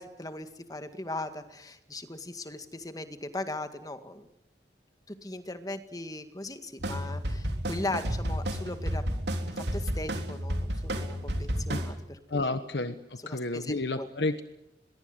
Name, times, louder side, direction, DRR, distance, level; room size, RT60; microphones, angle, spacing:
voice 1, 0.0-4.3 5.1-9.1 9.4-12.6 13.2-14.1, left 2 dB, 20° left, 8 dB, 1.9 m, -39 dB
sound 1, 6.8-11.9, equal, 75° right, 3.6 m, -31 dB
voice 2, 12.3-14.4, left 2 dB, 75° left, 9 dB, 1.3 m, -31 dB
23.0 x 22.5 x 8.1 m, 0.89 s
head